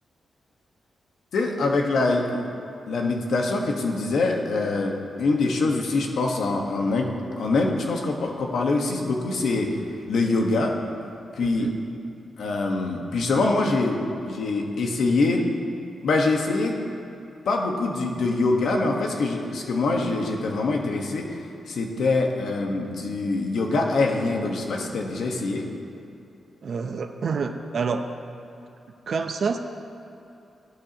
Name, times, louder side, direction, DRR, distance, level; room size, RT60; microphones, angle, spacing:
voice 1, 1.3-2.4 2.9-7.1 7.4-9.7 10.1-10.7 11.4-11.7 12.4-14.0 14.3-15.5 16.0-16.8 17.5-21.3 21.7-25.7, left 3 dB, 75° left, 1 dB, 1.4 m, -24 dB
voice 2, 11.4-11.7 26.6-28.0 29.1-29.6, right 5 dB, 60° right, 6 dB, 0.6 m, -27 dB
15.5 x 12.0 x 3.0 m, 2.8 s
cardioid pair, 105°, 0 cm